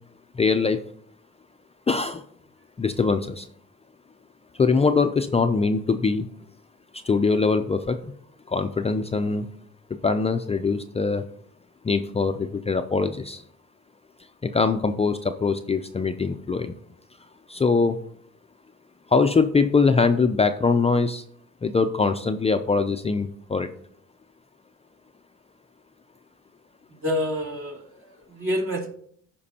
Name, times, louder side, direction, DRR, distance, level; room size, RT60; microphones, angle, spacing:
voice 1, 0.4-0.8 1.9-2.2 2.8-3.5 4.6-6.3 7.0-8.0 8.5-9.5 10.0-11.2 11.8-13.4 14.4-16.7 17.5-18.0 19.1-21.2 21.6-23.7, left 4 dB, 20° left, 7 dB, 0.4 m, -22 dB
voice 2, 27.0-28.9, left 1 dB, 45° right, -1 dB, 2.6 m, -28 dB
14.0 x 5.2 x 2.8 m, 0.64 s
cardioid pair, 90°, 30 cm